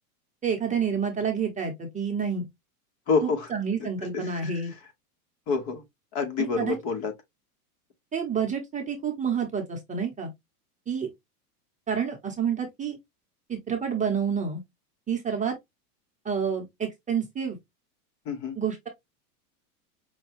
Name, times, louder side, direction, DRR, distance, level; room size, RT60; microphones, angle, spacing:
voice 1, 0.4-2.5 3.2-4.7 6.4-6.7 8.1-10.3 10.9-11.1 11.9-13.0 13.5-14.6 15.1-15.5 16.2-17.6 18.6-18.9, right 6 dB, 15° right, 0.9 m, -29 dB
voice 2, 3.1-3.5 3.8-3.9 4.1-4.6 5.5-5.8 6.1-7.1 18.2-18.6, left 5 dB, 45° left, 1.4 m, -28 dB
5.3 x 2.3 x 3.1 m
supercardioid pair, 130°, 46 cm